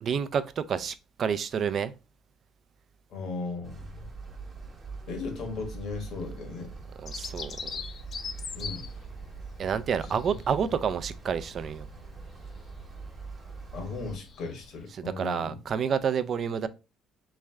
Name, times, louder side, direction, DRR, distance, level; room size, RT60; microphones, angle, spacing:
voice 1, 0.0-1.9 7.0-7.8 9.6-11.9 14.9-16.7, right 7 dB, 45° right, 0.4 m, -29 dB
voice 2, 3.1-3.9 5.1-6.7 8.5-8.9 10.0-10.1 13.7-15.6, left 4 dB, 65° left, 1.4 m, -36 dB
sound 1, 3.6-14.2, right 4 dB, 30° right, 0.8 m, -43 dB
Bird vocalization bird call bird song, 7.1-14.9, left 5 dB, 45° left, 0.4 m, -43 dB
3.6 x 3.2 x 3.4 m
cardioid pair, 125°, 0 cm